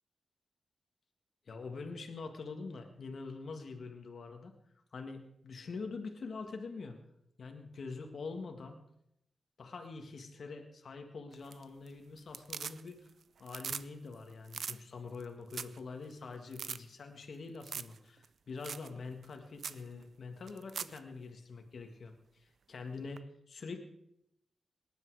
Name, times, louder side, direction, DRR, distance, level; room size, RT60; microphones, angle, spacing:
voice 1, 1.5-4.5 4.9-7.0 7.4-8.8 9.6-13.1 13.4-23.8, left 4 dB, 70° left, 5 dB, 1.8 m, -45 dB
sound 1, 11.3-11.9 12.2-13.1 13.4-13.9 14.1-14.2 14.5-14.8 15.2-15.3 15.5-15.8 16.1-16.2 16.5-16.8 17.6-18.0 18.2-18.3 18.6-18.9 19.2-19.3 19.6-19.8 20.5-21.0 23.2-23.3, right 6 dB, 80° right, 0.5 m, -41 dB
18.5 x 10.5 x 4.8 m, 0.77 s
cardioid pair, 75°, 0 cm